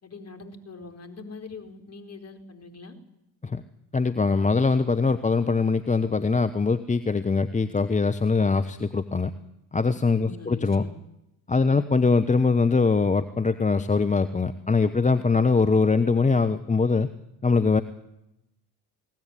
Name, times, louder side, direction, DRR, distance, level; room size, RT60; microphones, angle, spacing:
voice 1, 0.0-2.9 10.2-10.9 11.6-11.9, left 4 dB, 30° left, 6 dB, 4.6 m, -43 dB
voice 2, 3.9-9.3 9.7-10.8 11.5-17.1 17.4-17.8, left 4 dB, 15° left, 12 dB, 1.0 m, -22 dB
22.5 x 17.5 x 9.9 m, 0.88 s
hypercardioid pair, 55°, 49 cm